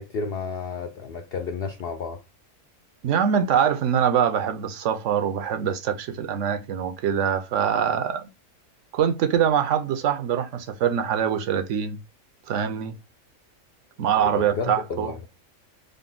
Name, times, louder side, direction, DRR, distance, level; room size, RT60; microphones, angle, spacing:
voice 1, 0.0-2.2 14.2-15.2, left 4 dB, 65° left, 0.6 m, -32 dB
voice 2, 3.0-8.3 8.9-12.0 12.5-12.9 14.0-15.1, right 8 dB, 70° right, 0.9 m, -24 dB
3.8 x 2.1 x 3.6 m
omnidirectional pair, 1.4 m